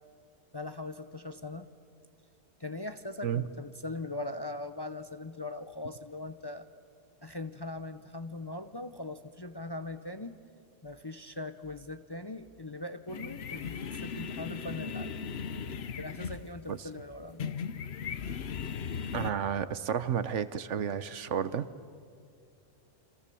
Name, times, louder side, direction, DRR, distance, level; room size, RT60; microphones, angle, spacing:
voice 1, 0.5-1.7 2.6-6.7 7.2-10.4 10.8-15.2 16.0-17.6, left 2 dB, 25° left, 9 dB, 0.6 m, -40 dB
sound 1, 13.1-19.3, left 6 dB, 60° left, 1.0 m, -37 dB
voice 2, 19.1-21.7, right 8 dB, 70° right, 14 dB, 1.2 m, -31 dB
28.0 x 26.5 x 7.0 m, 2.3 s
omnidirectional pair, 1.3 m